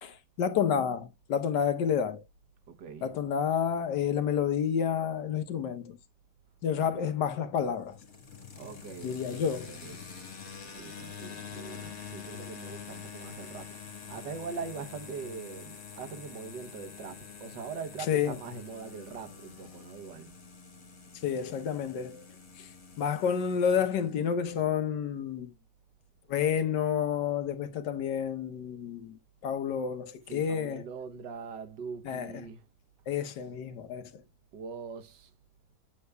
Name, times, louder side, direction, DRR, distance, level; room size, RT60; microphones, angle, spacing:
voice 1, 0.0-2.2 3.0-6.0 6.6-8.0 9.0-9.8 18.1-18.4 21.2-22.3 22.6-22.7 23.0-25.5 26.3-30.9 32.0-32.5 33.1-34.2, left 8 dB, 80° left, 1.5 m, -30 dB
voice 2, 2.7-3.1 6.8-7.1 8.5-10.1 10.7-20.4 30.3-32.6 34.5-35.3, right 5 dB, 90° right, 1.7 m, -42 dB
sound 1, 7.6-24.3, left 6 dB, 55° left, 2.3 m, -46 dB
8.3 x 8.1 x 2.2 m
omnidirectional pair, 1.8 m